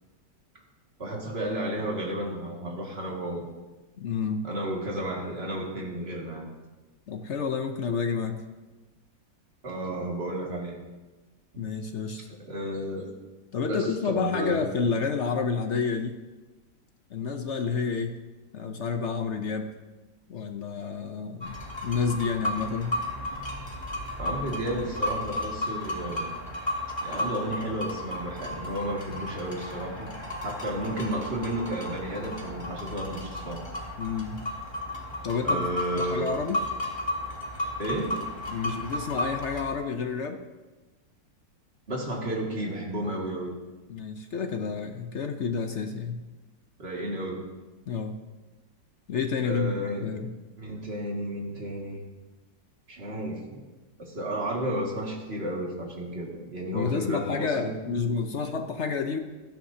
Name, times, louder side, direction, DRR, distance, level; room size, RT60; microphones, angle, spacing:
voice 1, 1.0-3.5 4.4-6.5 9.6-10.8 11.5-11.6 12.4-13.1 13.7-14.7 24.2-26.4 27.0-30.1 30.4-33.6 35.4-36.3 37.8-38.2 41.9-43.6 46.8-47.5 49.4-50.1 50.6-52.0 52.9-53.7 54.0-57.8, right 1 dB, 35° right, -2 dB, 2.3 m, -32 dB
voice 2, 4.0-4.5 7.1-8.4 11.6-12.2 13.5-16.2 17.1-18.2 18.5-19.7 20.3-23.0 34.0-34.4 35.2-35.7 36.0-36.6 38.5-40.4 43.9-46.2 47.9-48.2 49.1-50.3 56.7-59.2, left 5 dB, 55° left, 5 dB, 0.8 m, -29 dB
sound 1, 21.4-39.7, left 1 dB, 15° left, 1.9 m, -34 dB
16.5 x 13.0 x 2.8 m, 1.2 s
omnidirectional pair, 1.9 m